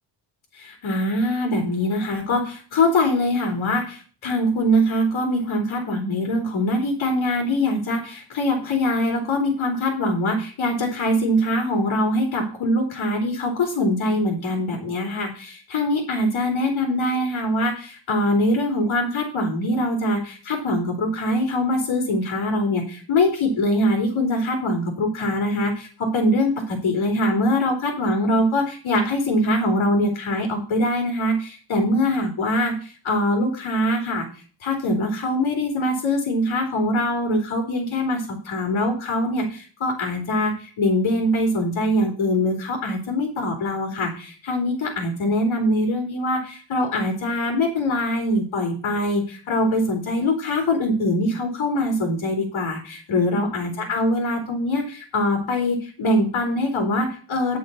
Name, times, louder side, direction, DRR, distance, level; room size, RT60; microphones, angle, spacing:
voice 1, 0.5-57.6, left 1 dB, 70° left, 2 dB, 3.4 m, -23 dB
9.8 x 6.5 x 6.9 m, 0.39 s
cardioid pair, 70°, 50 cm